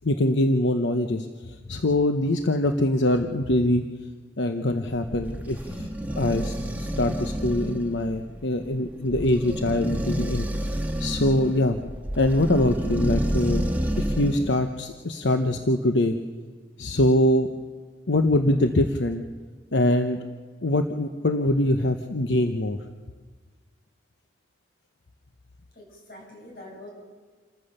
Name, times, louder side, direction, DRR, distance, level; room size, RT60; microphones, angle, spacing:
voice 1, 0.0-3.8 4.4-5.9 6.2-10.5 10.7-11.8 12.2-13.7 14.0-16.1 16.8-17.5 18.1-19.2 19.7-20.2 20.6-22.8, left 1 dB, 85° left, 6 dB, 0.9 m, -23 dB
sound 1, 4.9-14.6, right 1 dB, 10° right, 1.5 m, -29 dB
voice 2, 25.8-26.9, left 1 dB, 55° left, -1 dB, 7.0 m, -44 dB
28.0 x 14.5 x 6.7 m, 1.5 s
head